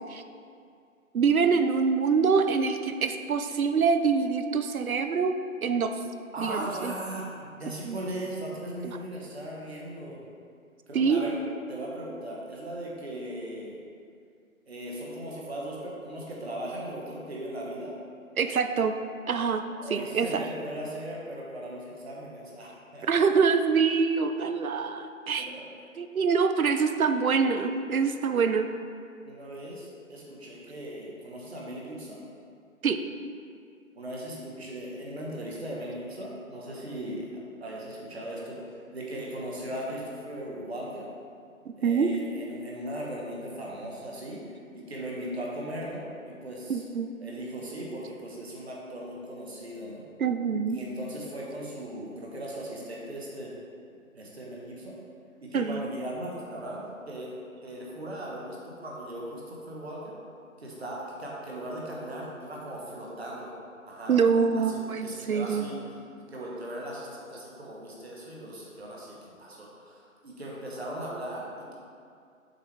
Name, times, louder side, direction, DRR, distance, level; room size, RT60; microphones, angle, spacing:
voice 1, 1.1-5.3 5.6-5.9 6.4-6.9 7.8-8.0 8.8-9.0 10.9-11.2 18.4-18.9 19.3-19.6 19.9-20.4 23.1-25.5 26.0-28.7 32.8-33.0 41.8-42.1 46.7-47.1 50.2-50.8 55.5-55.8 64.1-65.7, right 5 dB, 85° right, 8 dB, 0.6 m, -25 dB
voice 2, 6.3-7.2 7.6-10.2 10.9-11.4 11.7-13.8 14.7-17.9 19.8-23.1 25.4-25.7 29.2-32.2 33.9-37.3 37.6-41.1 41.8-44.4 44.7-46.8 47.2-50.0 50.7-53.5 54.1-55.0 55.4-57.3 57.6-60.2 60.6-63.5 63.9-64.1 64.5-71.7, right 1 dB, 50° right, -4 dB, 1.3 m, -38 dB
6.6 x 4.6 x 3.4 m, 2.3 s
figure-of-eight pair, 155°, 42 cm